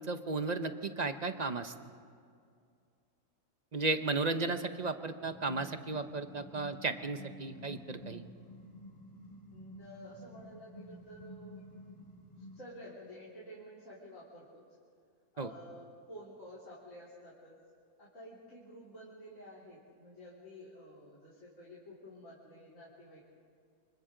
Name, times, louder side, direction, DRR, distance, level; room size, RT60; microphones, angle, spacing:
voice 1, 0.0-1.7 3.7-8.2 15.4-15.5, right 3 dB, 40° right, 9 dB, 0.7 m, -34 dB
sound 1, 5.2-12.6, equal, 30° left, 3.3 m, -51 dB
voice 2, 9.5-11.6 12.4-14.6 15.3-17.6 18.0-23.2, equal, 55° left, -7 dB, 4.0 m, -51 dB
28.5 x 25.5 x 3.9 m, 2.3 s
omnidirectional pair, 1.6 m